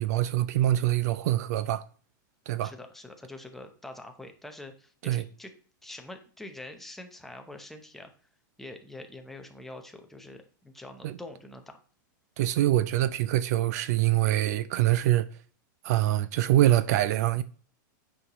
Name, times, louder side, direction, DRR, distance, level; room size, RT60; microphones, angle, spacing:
voice 1, 0.0-1.8 2.5-2.7 5.0-5.2 11.0-11.2 12.4-15.3 15.8-17.4, right 14 dB, 50° right, 0.4 m, -24 dB
voice 2, 2.6-5.5 5.8-8.1 8.6-11.8, left 2 dB, ahead, 0.7 m, -45 dB
8.4 x 5.5 x 3.0 m
supercardioid pair, 155°, 11 cm